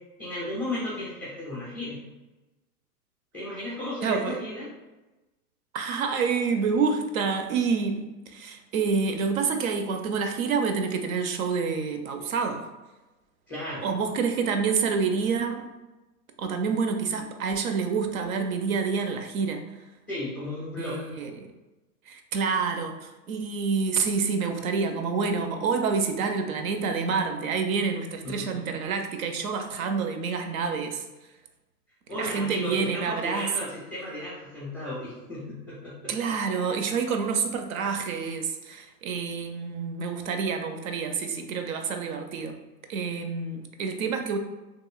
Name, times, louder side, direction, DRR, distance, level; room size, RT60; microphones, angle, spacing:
voice 1, 0.2-2.0 3.3-4.7 13.5-13.8 20.1-21.1 28.2-28.6 32.1-36.1, left 1 dB, 15° left, -9 dB, 0.3 m, -34 dB
voice 2, 4.0-4.4 5.7-12.7 13.8-15.6 16.4-19.6 20.8-21.5 22.1-31.0 32.1-33.5 36.1-42.6 42.9-44.4, right 5 dB, 60° right, 5 dB, 0.5 m, -28 dB
2.9 x 2.6 x 2.2 m, 1.1 s
hypercardioid pair, 135°, 48 cm